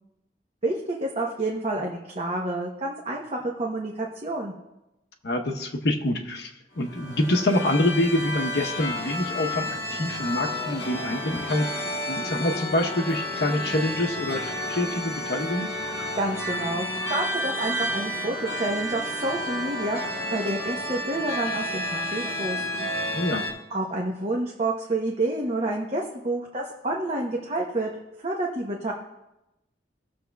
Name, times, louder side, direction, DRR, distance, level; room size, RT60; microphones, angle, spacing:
voice 1, 0.6-4.5 16.1-22.9 23.7-27.9 28.2-28.9, right 2 dB, 35° right, -1 dB, 0.8 m, -29 dB
voice 2, 5.2-6.5 6.8-14.4 14.7-15.7 23.1-23.4, left 1 dB, 70° left, 3 dB, 0.9 m, -26 dB
sound 1, 6.8-23.5, left 1 dB, 35° left, 2.1 m, -31 dB
17.5 x 6.9 x 2.3 m, 0.93 s
head